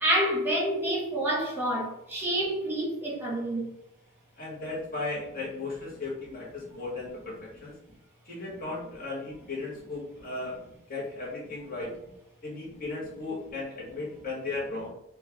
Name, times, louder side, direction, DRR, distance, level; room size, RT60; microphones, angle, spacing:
voice 1, 0.0-3.6, right 1 dB, 10° right, -4 dB, 1.2 m, -28 dB
voice 2, 4.4-7.7 8.2-10.6 10.9-12.0 12.4-14.9, left 3 dB, 40° left, -4 dB, 1.3 m, -36 dB
4.4 x 2.4 x 3.4 m, 0.82 s
head